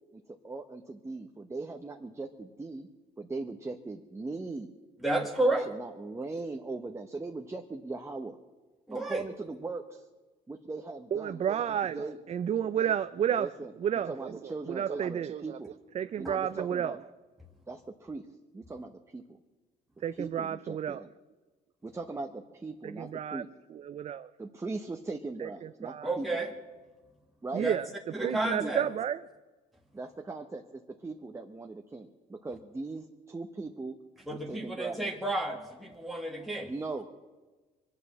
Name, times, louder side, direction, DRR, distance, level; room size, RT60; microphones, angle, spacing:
voice 1, 0.1-2.9 3.2-4.7 5.2-8.4 8.9-10.1 10.5-11.4 11.9-12.2 13.3-13.7 14.1-15.7 16.2-17.0 17.7-18.2 18.5-19.2 20.1-21.1 21.8-23.5 24.4-26.3 27.4-27.6 28.2-28.9 29.9-33.9 34.3-35.0 36.6-37.1, right 3 dB, 15° right, 4 dB, 0.9 m, -39 dB
voice 2, 5.0-5.7 8.9-9.2 16.2-16.3 26.0-26.5 27.6-27.8 28.1-28.9 34.3-36.7, right 2 dB, ahead, 0 dB, 1.6 m, -31 dB
voice 3, 11.1-13.5 13.8-15.6 15.9-17.0 20.0-21.0 22.8-23.4 23.7-24.3 25.4-26.1 27.5-27.9 28.2-29.2, right 9 dB, 40° right, 12 dB, 0.4 m, -31 dB
23.5 x 8.3 x 7.3 m, 1.3 s
cardioid pair, 110°, 17 cm